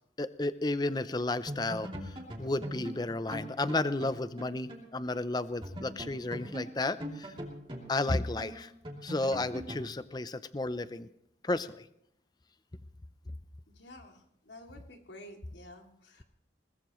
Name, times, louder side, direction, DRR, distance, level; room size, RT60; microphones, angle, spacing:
voice 1, 0.2-7.3 7.9-8.7 9.0-11.1 11.4-11.8, left 2 dB, 25° left, 13 dB, 0.6 m, -33 dB
sound 1, 1.0-1.2 1.5-4.9 5.2-5.3 5.6-9.9, equal, 30° right, 3.0 m, -42 dB
voice 2, 13.7-16.2, left 1 dB, 85° left, 3 dB, 2.7 m, -51 dB
21.5 x 20.0 x 3.1 m, 0.73 s
head